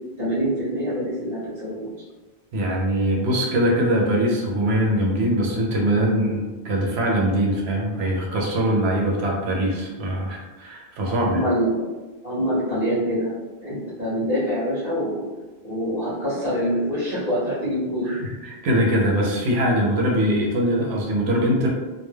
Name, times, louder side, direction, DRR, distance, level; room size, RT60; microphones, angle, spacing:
voice 1, 0.2-1.9 11.1-11.8 12.2-13.3 13.6-15.2 15.6-18.2, equal, 40° right, -11 dB, 1.0 m, -25 dB
voice 2, 2.5-11.4 18.1-21.7, equal, 85° right, -1 dB, 0.9 m, -22 dB
2.2 x 2.2 x 3.1 m, 1.2 s
omnidirectional pair, 1.0 m